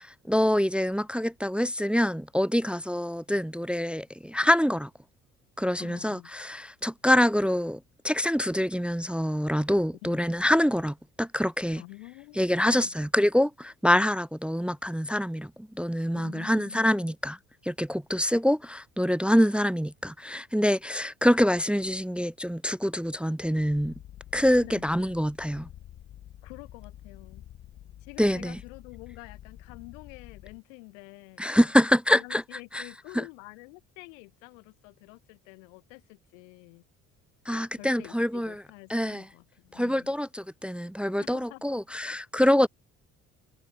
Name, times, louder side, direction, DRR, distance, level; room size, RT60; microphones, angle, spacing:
voice 1, 0.0-4.9 5.6-11.8 12.4-17.4 17.7-23.9 24.3-25.7 28.2-28.6 31.4-32.4 32.7-32.8 33.1-33.2 37.5-38.6 38.9-39.2 39.7-42.7, equal, 5° right, 0.5 m, -25 dB
voice 2, 5.8-6.3 10.0-10.2 11.8-13.0 16.1-17.1 24.6-24.9 26.4-27.4 28.0-31.5 32.1-36.8 37.8-40.1 41.2-42.0, left 35 dB, 80° left, 5.6 m, -48 dB
Purr, 23.6-30.6, left 12 dB, 45° left, 0.9 m, -48 dB
hypercardioid pair, 60°, 37 cm